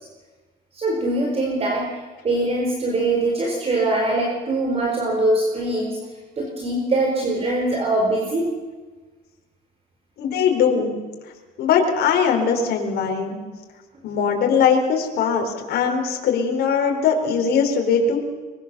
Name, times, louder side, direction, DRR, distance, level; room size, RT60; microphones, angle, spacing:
voice 1, 0.7-6.0 6.4-8.5, right 2 dB, 35° right, 0 dB, 4.5 m, -22 dB
voice 2, 10.2-10.9 11.6-13.4 14.0-18.3, left 6 dB, 70° left, 2 dB, 4.6 m, -20 dB
23.5 x 23.0 x 7.0 m, 1.3 s
cardioid pair, 110°, 17 cm